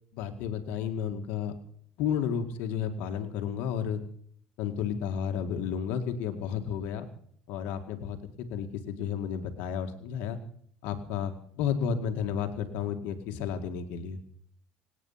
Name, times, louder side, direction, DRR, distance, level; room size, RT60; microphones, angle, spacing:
voice 1, 0.1-1.6 2.0-4.0 4.6-7.1 7.5-10.4 10.8-14.2, left 8 dB, 75° left, 6 dB, 2.0 m, -32 dB
25.0 x 9.4 x 5.8 m, 0.64 s
supercardioid pair, 95°, 3 cm